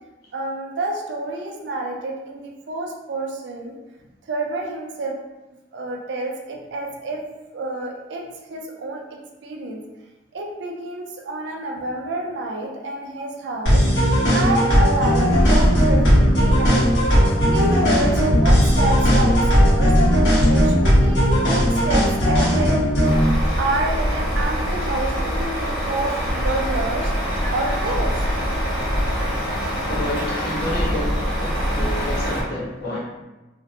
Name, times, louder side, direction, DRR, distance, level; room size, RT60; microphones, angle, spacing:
voice 1, 0.3-3.8 4.3-5.1 5.7-7.2 7.5-9.8 10.3-19.9 20.4-22.8 23.6-27.1 27.5-28.4 29.0-29.3, right 2 dB, 75° right, 1 dB, 0.4 m, -29 dB
sound 1, 13.7-23.3, equal, 90° left, 1.0 m, -17 dB
sound 2, 15.3-32.4, equal, 15° right, 0.5 m, -24 dB
Truck, 23.0-32.4, equal, 25° left, 1.0 m, -28 dB
voice 2, 29.9-33.0, left 1 dB, 60° left, -4 dB, 0.7 m, -29 dB
2.5 x 2.1 x 2.5 m, 1.1 s
head